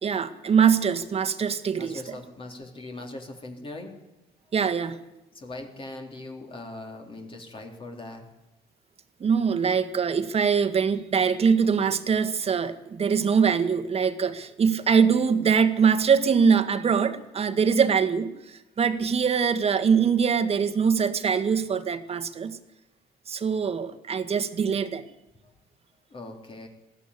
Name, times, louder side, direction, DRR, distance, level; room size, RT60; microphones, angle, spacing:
voice 1, 0.0-2.0 4.5-5.0 9.2-22.6 23.3-25.0, right 6 dB, 35° right, 9 dB, 1.8 m, -23 dB
voice 2, 1.7-4.0 5.3-8.3 12.3-12.4 25.4-25.5 26.1-26.7, left 2 dB, 30° left, 2 dB, 3.6 m, -40 dB
20.0 x 14.5 x 9.9 m, 0.97 s
cardioid pair, 110°, 17 cm